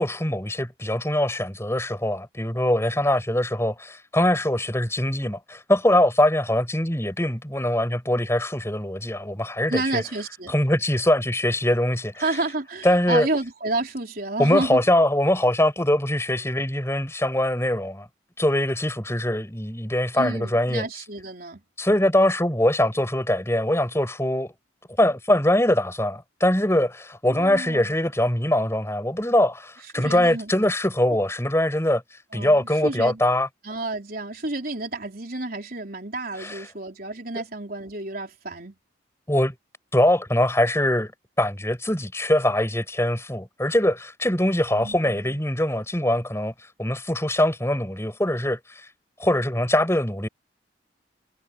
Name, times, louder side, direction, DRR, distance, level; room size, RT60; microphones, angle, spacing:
voice 1, 0.0-10.0 10.5-12.1 12.8-13.3 14.4-18.1 18.4-20.8 21.8-24.5 25.0-32.0 32.3-33.5 36.4-36.6 39.3-39.5 39.9-41.1 41.4-46.5 46.8-48.8 49.2-50.3, left 1 dB, 15° left, 6.2 m, -22 dB
voice 2, 9.7-10.5 12.2-14.8 20.1-21.6 27.3-27.9 29.8-30.5 32.3-33.2 33.6-38.8 44.7-45.4, right 2 dB, 50° right, 4.4 m, -30 dB
head